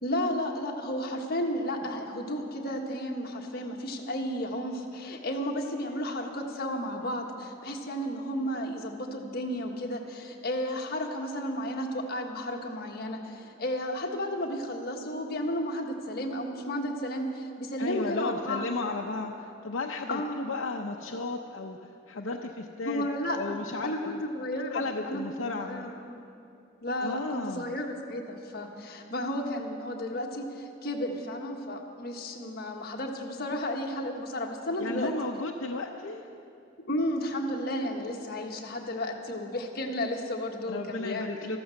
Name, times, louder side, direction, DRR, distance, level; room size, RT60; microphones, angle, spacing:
voice 1, 0.0-18.9 20.1-20.4 22.8-23.6 23.8-25.2 25.6-26.2 26.8-27.2 27.5-35.1 36.8-41.6, left 1 dB, 50° left, 2 dB, 1.5 m, -33 dB
voice 2, 17.8-24.2 24.7-26.0 27.0-27.7 34.8-36.2 40.7-41.6, left 3 dB, 85° left, 1 dB, 0.8 m, -34 dB
14.0 x 14.0 x 6.5 m, 2.8 s
head